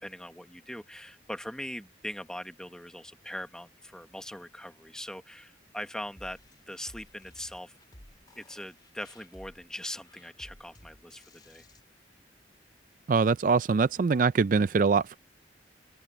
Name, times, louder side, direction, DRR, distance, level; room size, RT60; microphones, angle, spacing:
voice 1, 0.0-7.8 8.4-11.7, left 1 dB, 5° left, 1.1 m, -41 dB
sound 1, 6.2-11.8, left 1 dB, 25° left, 3.1 m, -55 dB
voice 2, 13.1-15.2, right 5 dB, 45° right, 0.4 m, -23 dB
open air
head